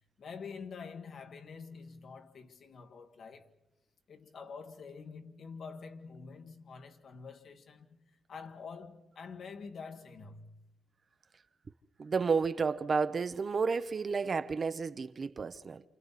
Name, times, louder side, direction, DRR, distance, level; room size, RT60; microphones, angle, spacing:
voice 1, 0.2-3.5 4.1-8.0 8.3-10.6, left 5 dB, 65° left, 1.6 m, -47 dB
voice 2, 12.0-15.8, right 5 dB, 40° right, 0.7 m, -31 dB
28.5 x 28.0 x 4.2 m
cardioid pair, 120°, 0 cm